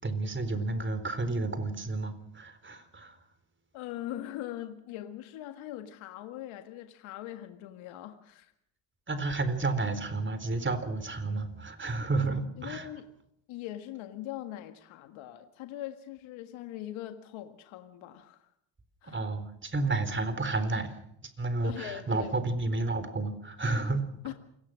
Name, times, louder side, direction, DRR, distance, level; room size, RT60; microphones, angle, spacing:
voice 1, 0.0-3.2 9.1-12.9 19.1-21.0 21.4-24.1, right 3 dB, 25° right, 11 dB, 4.0 m, -31 dB
voice 2, 3.7-8.5 12.6-13.1 13.5-18.5 19.0-19.2 21.6-22.3 24.2-24.3, left 13 dB, 70° left, 7 dB, 1.8 m, -41 dB
28.0 x 18.5 x 6.3 m, 0.74 s
supercardioid pair, 80°, 50 cm